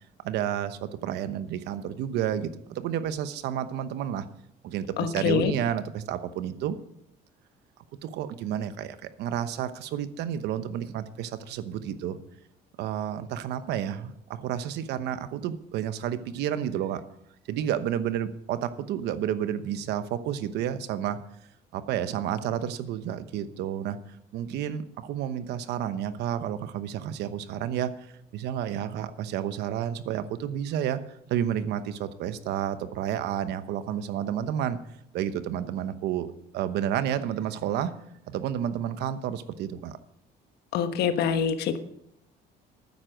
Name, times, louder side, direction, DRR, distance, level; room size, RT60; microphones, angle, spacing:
voice 1, 0.2-4.3 4.6-6.8 8.0-12.2 12.8-17.0 17.5-21.2 21.7-24.0 24.3-28.1 28.3-31.0 31.3-34.8 35.1-37.9 38.3-40.0, right 10 dB, 80° right, 12 dB, 1.0 m, -30 dB
voice 2, 5.0-5.5 40.7-41.8, left 7 dB, 75° left, 9 dB, 1.3 m, -25 dB
12.5 x 9.5 x 5.2 m, 0.76 s
cardioid pair, 110°, 17 cm